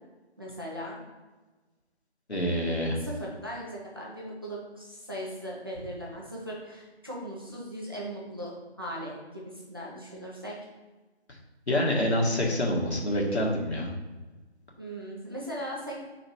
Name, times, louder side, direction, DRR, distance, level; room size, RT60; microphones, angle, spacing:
voice 1, 0.4-1.0 3.0-10.6 14.8-16.0, equal, 20° right, -4 dB, 0.8 m, -38 dB
voice 2, 2.3-3.0 11.7-13.9, left 1 dB, 75° left, -1 dB, 1.8 m, -26 dB
5.2 x 3.9 x 4.5 m, 1.2 s
figure-of-eight pair, 165°, 33 cm